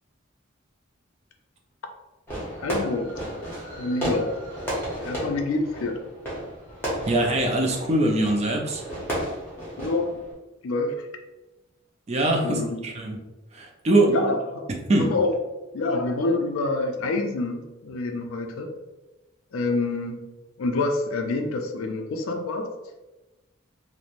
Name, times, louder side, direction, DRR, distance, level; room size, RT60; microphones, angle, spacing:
Fireworks, 2.3-10.3, equal, 10° left, 0.7 m, -33 dB
voice 1, 2.6-3.1 3.8-4.4 5.0-6.0 9.8-10.1 10.6-11.0 12.4-12.8 14.1-14.7 15.1-15.3 15.7-18.7 19.5-20.2 20.6-22.7, left 3 dB, 75° left, 4 dB, 0.4 m, -27 dB
voice 2, 7.1-8.8 12.1-13.2 13.5-14.1 14.9-15.1, right 1 dB, 30° right, 1 dB, 0.3 m, -22 dB
3.0 x 2.0 x 2.4 m, 1.1 s
head